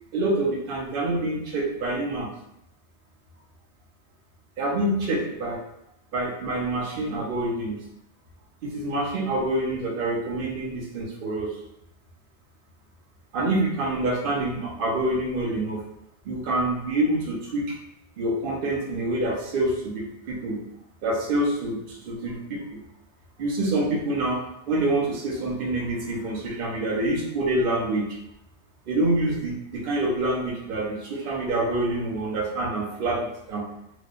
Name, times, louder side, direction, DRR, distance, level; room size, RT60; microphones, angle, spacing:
voice 1, 0.1-2.3 4.6-5.6 6.1-7.8 8.6-11.5 13.3-15.8 16.2-17.7 18.2-20.6 21.0-22.8 23.4-24.4 24.7-28.2 28.9-33.7, right 1 dB, 60° right, -1 dB, 0.8 m, -26 dB
3.1 x 2.0 x 2.4 m, 0.79 s
omnidirectional pair, 1.2 m